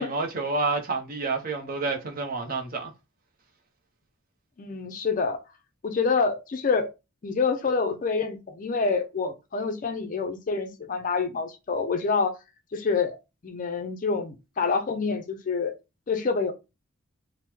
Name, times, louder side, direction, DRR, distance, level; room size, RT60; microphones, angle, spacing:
voice 1, 0.0-2.9, right 3 dB, 40° right, 0.6 m, -29 dB
voice 2, 4.6-5.4 5.8-6.9 7.2-12.3 12.7-13.2 13.4-15.7 16.1-16.5, left 4 dB, 40° left, 0.4 m, -27 dB
3.0 x 2.0 x 3.3 m
head